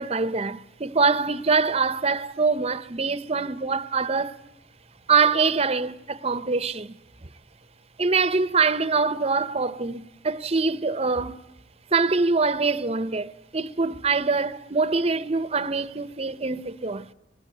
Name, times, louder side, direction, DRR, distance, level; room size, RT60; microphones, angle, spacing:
voice 1, 0.0-4.4 5.1-7.0 8.0-11.4 11.9-17.1, right 4 dB, 35° right, 0.8 m, -24 dB
21.5 x 20.5 x 9.1 m
head